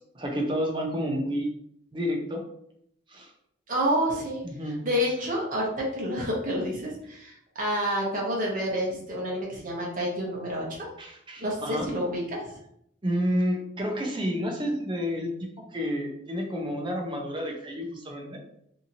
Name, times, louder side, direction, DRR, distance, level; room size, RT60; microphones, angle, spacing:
voice 1, 0.1-1.5 1.9-2.4 3.1-3.3 4.4-4.9 11.0-11.9 13.0-18.4, equal, 25° right, 1 dB, 0.5 m, -30 dB
voice 2, 3.7-4.4 4.8-10.9 11.4-12.5, equal, 45° right, -2 dB, 0.8 m, -29 dB
2.8 x 2.6 x 2.6 m, 0.72 s
head